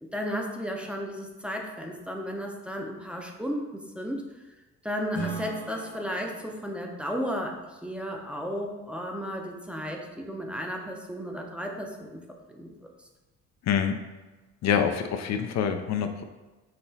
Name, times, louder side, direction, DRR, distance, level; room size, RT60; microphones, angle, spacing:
voice 1, 0.0-4.3 4.8-12.2 12.5-12.7, equal, 5° right, 1 dB, 0.5 m, -34 dB
Acoustic guitar / Strum, 5.1-8.7, right 3 dB, 25° left, 0.9 m, -40 dB
voice 2, 13.6-14.0 14.6-16.2, left 8 dB, 65° left, 7 dB, 0.4 m, -26 dB
5.6 x 2.9 x 2.7 m, 1.2 s
cardioid pair, 90°, 30 cm